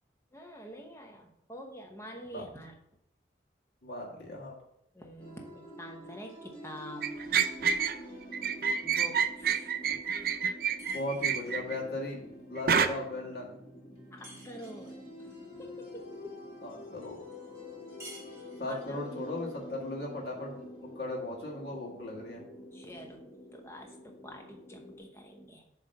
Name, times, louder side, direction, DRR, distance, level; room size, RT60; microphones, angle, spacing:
voice 1, 0.3-2.8 4.9-7.1 8.8-9.8 14.1-16.4 18.6-19.0 22.7-23.2 23.5-25.6, equal, 15° left, 2 dB, 0.9 m, -47 dB
voice 2, 3.8-4.6 10.9-13.5 16.6-17.2 18.6-22.4, left 2 dB, 60° left, -3 dB, 1.7 m, -37 dB
sound 1, 5.2-25.0, left 1 dB, 30° left, 1.6 m, -47 dB
sound 2, 7.0-8.0 8.3-11.7 12.7-12.9, right 7 dB, 50° right, 0.4 m, -28 dB
sound 3, 10.8-11.6 14.2-15.0 18.0-18.9, right 2 dB, 15° right, 1.9 m, -51 dB
7.5 x 3.2 x 5.4 m, 0.76 s
head